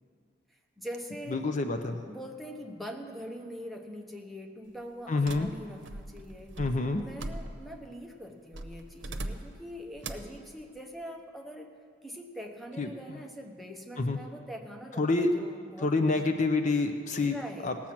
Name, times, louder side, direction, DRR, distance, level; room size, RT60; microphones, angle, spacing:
voice 1, 0.5-1.4 2.1-6.6 6.9-11.7 12.0-16.2 17.2-17.8, equal, ahead, 2 dB, 0.8 m, -43 dB
voice 2, 1.3-2.0 5.1-5.5 6.6-7.0 12.8-12.9 14.0-14.2 15.0-15.3 15.8-17.3 17.6-17.8, left 3 dB, 40° left, 6 dB, 0.5 m, -27 dB
sound 1, 5.3-7.8 8.5-9.6 10.0-10.4, right 2 dB, 80° right, 0.8 m, -40 dB
18.0 x 7.4 x 5.9 m, 2.1 s
head